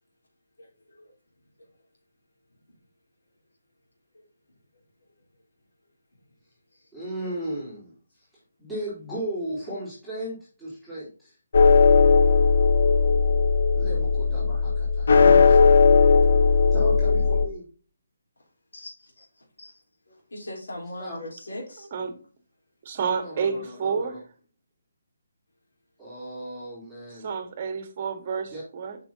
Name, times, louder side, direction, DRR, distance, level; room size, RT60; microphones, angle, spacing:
voice 1, 0.6-1.1 1.6-1.7 4.1-4.2 6.7-6.9 16.6-16.7 18.7-18.9 19.2-19.3 19.6-21.9, left 1 dB, 85° left, -1 dB, 3.8 m, -41 dB
voice 2, 6.9-7.9 8.6-11.4 13.8-15.7 16.7-17.7 21.0-21.2 23.2-24.2 26.0-27.3 28.5-28.6, right 1 dB, ahead, -12 dB, 3.7 m, -36 dB
sound 1, 11.5-17.5, left 5 dB, 60° left, 1.0 m, -17 dB
voice 3, 22.8-24.2 27.1-29.0, right 6 dB, 35° right, 7 dB, 1.6 m, -29 dB
7.0 x 5.9 x 2.8 m, 0.38 s
hypercardioid pair, 155°, 0 cm